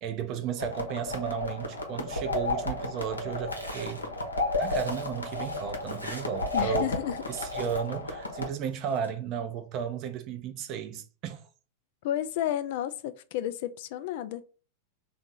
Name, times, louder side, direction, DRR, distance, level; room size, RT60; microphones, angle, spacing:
voice 1, 0.0-4.0 4.6-6.9 7.3-11.4, right 8 dB, 40° right, 0.6 m, -34 dB
sound 1, 0.6-8.5, left 2 dB, 80° left, 0.8 m, -32 dB
sound 2, 3.5-6.9 7.2-7.9 8.6-9.1, equal, 90° right, 0.8 m, -47 dB
voice 2, 6.5-7.2 12.0-14.4, left 11 dB, 50° left, 0.3 m, -31 dB
3.5 x 2.5 x 3.9 m
figure-of-eight pair, 90°, 0 cm